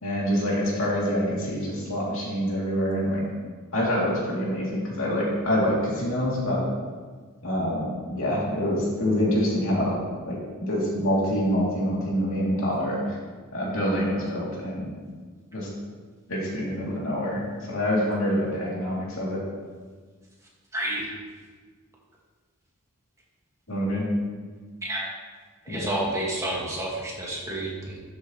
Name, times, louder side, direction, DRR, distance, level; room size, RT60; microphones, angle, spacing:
voice 1, 0.0-3.2 3.7-6.6 7.4-10.0 10.3-13.2 13.5-14.9 15.5-15.7 16.3-19.4 23.7-24.1 25.7-25.9, equal, 70° left, -5 dB, 2.7 m, -26 dB
voice 2, 20.7-21.1 24.8-25.1 25.7-28.0, right 1 dB, 15° right, -4 dB, 1.7 m, -30 dB
12.5 x 7.2 x 3.1 m, 1.5 s
head